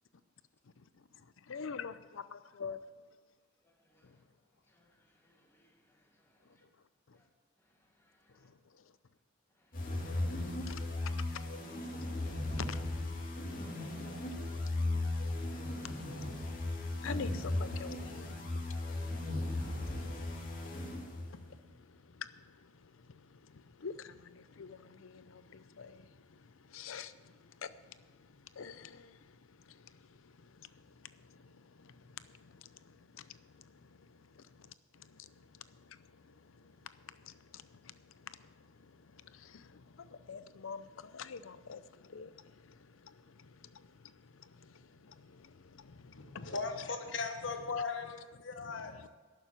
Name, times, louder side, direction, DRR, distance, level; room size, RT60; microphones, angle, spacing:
voice 1, 1.5-2.8 10.7-10.8 12.6-13.1 13.5-13.6 15.3-15.4 15.8-15.9 17.0-18.8 19.7-19.8 21.3-21.6 22.2-22.3 23.3-26.0 26.7-27.1 27.6-27.7 28.6-29.2 31.3-31.4 31.8-31.9 32.4-32.5 33.1-33.2 35.2-35.3 37.2-37.9 38.3-38.4 39.3-41.8 42.1-42.3 42.6-42.7 43.0-43.2 43.6-43.8 44.6-44.7 45.0-46.5, left 6 dB, 80° left, 0.6 m, -46 dB
voice 2, 3.6-4.2 4.7-6.7 7.1-7.3 7.6-8.5 9.6-10.2, left 1 dB, 10° left, 1.9 m, -71 dB
sound 1, 9.7-21.5, left 2 dB, 45° left, 2.3 m, -37 dB
voice 3, 46.1-48.9, left 4 dB, 65° left, 1.4 m, -38 dB
11.5 x 7.0 x 9.3 m
head